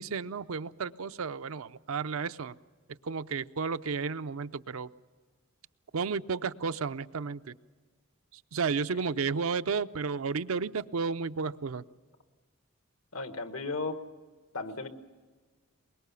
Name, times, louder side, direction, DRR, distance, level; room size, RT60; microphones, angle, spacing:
voice 1, 0.0-2.5 3.0-4.9 5.9-7.5 8.5-11.8, right 5 dB, 90° right, 12 dB, 0.6 m, -32 dB
voice 2, 13.1-14.0 14.5-14.9, left 3 dB, 85° left, 8 dB, 1.4 m, -35 dB
23.5 x 21.5 x 6.9 m, 1.4 s
head